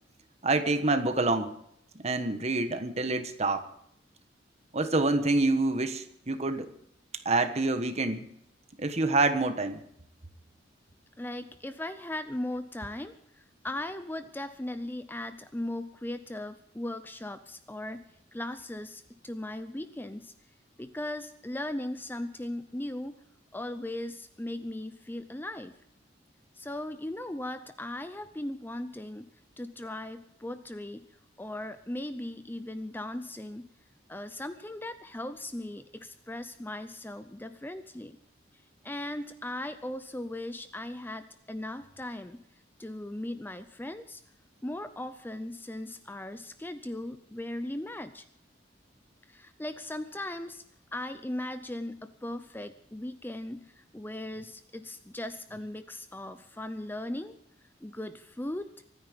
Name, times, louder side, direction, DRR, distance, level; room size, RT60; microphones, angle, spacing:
voice 1, 0.4-1.6 2.0-3.6 4.7-6.7 7.2-8.3 8.8-9.8, right 2 dB, 35° right, 9 dB, 1.3 m, -27 dB
voice 2, 11.2-18.0 18.3-20.3 20.8-23.2 23.5-25.8 26.5-29.3 29.6-31.1 31.4-33.7 34.1-38.2 38.8-42.4 42.8-44.2 44.6-48.2 49.3-50.6 50.9-57.4 57.8-58.7, left 1 dB, 10° left, 11 dB, 0.6 m, -38 dB
24.5 x 9.8 x 5.2 m, 0.72 s
head